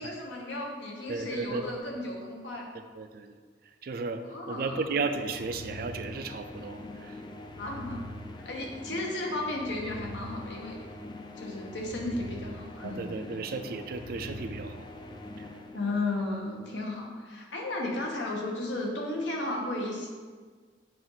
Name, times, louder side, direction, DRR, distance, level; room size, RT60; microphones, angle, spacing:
voice 1, 0.0-2.7 4.2-4.9 7.6-8.0 8.3-10.8 11.4-13.1 15.7-20.1, left 2 dB, 80° left, -1 dB, 1.2 m, -34 dB
voice 2, 1.1-1.6 2.9-3.4 3.8-7.2 12.8-14.9 15.4-15.5, right 4 dB, 55° right, 8 dB, 0.4 m, -34 dB
sound 1, 4.6-16.4, left 1 dB, 25° left, 0.4 m, -43 dB
7.5 x 2.6 x 5.6 m, 1.5 s
head